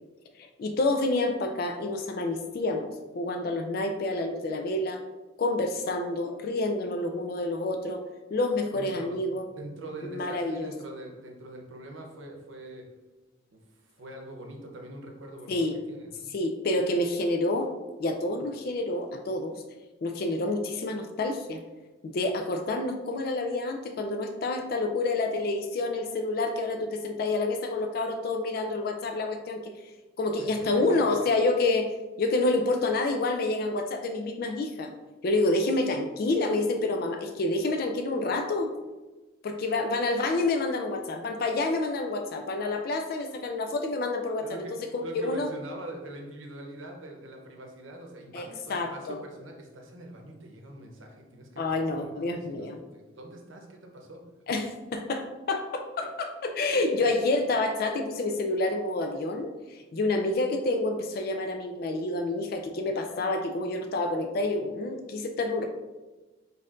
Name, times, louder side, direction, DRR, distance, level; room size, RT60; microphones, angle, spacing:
voice 1, 0.4-5.0 5.4-8.0 8.3-9.4 10.1-10.7 15.5-15.8 16.3-17.7 18.0-19.6 20.0-21.6 22.0-29.7 30.2-31.9 32.2-34.9 35.2-38.7 39.4-45.5 48.3-49.2 51.6-52.8 54.5-65.7, left 2 dB, 50° left, 6 dB, 0.3 m, -28 dB
voice 2, 8.7-9.2 9.5-12.8 13.5-15.6 15.9-16.3 30.4-30.5 30.7-31.1 44.4-44.8 45.0-54.2 54.5-54.6 56.7-57.1, right 1 dB, 85° right, 1 dB, 0.8 m, -43 dB
4.2 x 4.1 x 2.5 m, 1.2 s
head